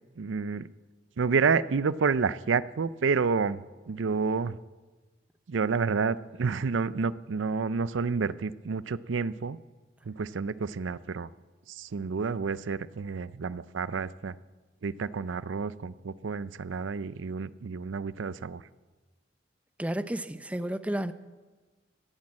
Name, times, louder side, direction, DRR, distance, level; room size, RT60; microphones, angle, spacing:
voice 1, 0.2-0.7 1.2-4.6 5.5-9.6 10.1-11.3 11.7-14.3 14.8-18.6, right 5 dB, 80° right, 18 dB, 0.5 m, -29 dB
voice 2, 19.8-21.1, right 1 dB, 5° right, 12 dB, 0.5 m, -31 dB
16.5 x 10.5 x 7.4 m, 1.3 s
head